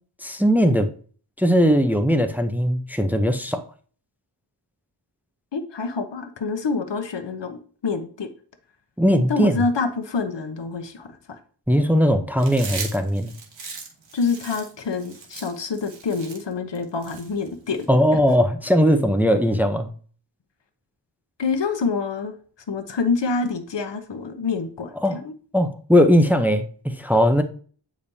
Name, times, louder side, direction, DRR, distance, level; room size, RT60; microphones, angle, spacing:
voice 1, 0.2-0.9 1.4-3.6 9.0-9.6 11.7-13.3 17.9-19.9 25.0-25.2 25.5-27.4, equal, 5° right, 0.6 m, -19 dB
voice 2, 5.5-8.3 9.3-11.4 14.1-17.9 18.1-18.2 21.4-22.3 22.7-25.3, left 4 dB, 75° left, 0.9 m, -27 dB
Chewing mastication, 12.4-17.8, right 4 dB, 85° right, 1.4 m, -38 dB
8.6 x 5.1 x 2.7 m
wide cardioid pair, 75°, 43 cm